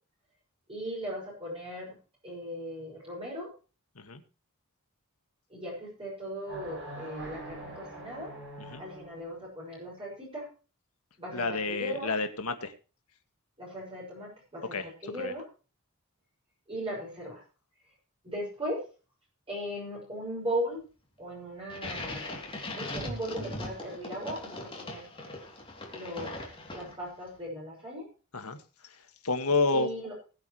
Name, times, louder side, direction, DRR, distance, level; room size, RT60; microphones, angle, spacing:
voice 1, 0.7-2.0 2.2-3.5 5.5-8.3 8.8-10.5 11.2-12.1 13.6-15.4 16.7-17.4 18.2-18.8 19.5-20.8 21.2-22.4 22.8-25.0 25.9-26.4 26.7-28.1 29.7-30.1, equal, 25° right, -5 dB, 6.3 m, -37 dB
sound 1, 6.5-9.3, right 1 dB, 55° right, 7.6 m, -43 dB
voice 2, 11.3-12.7 14.7-14.9 15.2-15.3 28.3-28.6 28.8-29.0 29.2-29.9, left 3 dB, 80° left, 8 dB, 1.9 m, -29 dB
sound 2, 21.7-27.2, left 1 dB, 25° left, 3.1 m, -39 dB
20.5 x 8.5 x 3.2 m, 0.35 s
head